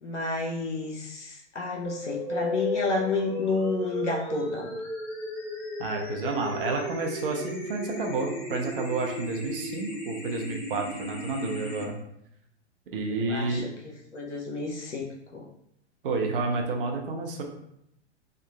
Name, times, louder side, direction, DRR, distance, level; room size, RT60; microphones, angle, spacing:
voice 1, 0.0-4.7 13.1-15.5, left 3 dB, 85° left, 0 dB, 0.6 m, -31 dB
sound 1, 1.8-11.8, left 1 dB, 30° left, 0.7 m, -35 dB
voice 2, 5.8-12.0 12.9-13.7 16.0-17.4, right 3 dB, 50° right, 1 dB, 0.6 m, -30 dB
2.8 x 2.3 x 2.3 m, 0.77 s
figure-of-eight pair, 105°, 35 cm